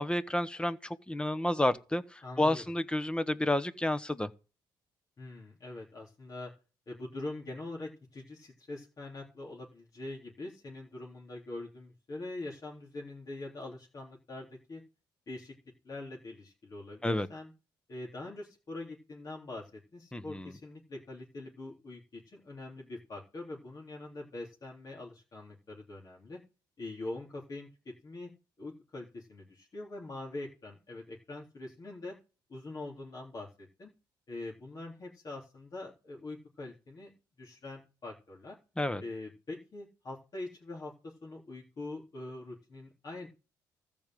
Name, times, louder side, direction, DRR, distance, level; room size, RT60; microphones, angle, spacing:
voice 1, 0.0-4.3 17.0-17.3 20.1-20.5 38.8-39.0, left 1 dB, 10° left, 1.2 m, -30 dB
voice 2, 2.2-2.6 5.2-6.5 6.9-14.8 15.3-15.5 15.8-17.5 17.9-26.4 26.8-28.3 28.6-32.2 32.5-33.9 34.3-38.6 39.0-43.3, left 2 dB, 45° left, 3.6 m, -43 dB
14.0 x 5.3 x 7.7 m
supercardioid pair, 70°, 9 cm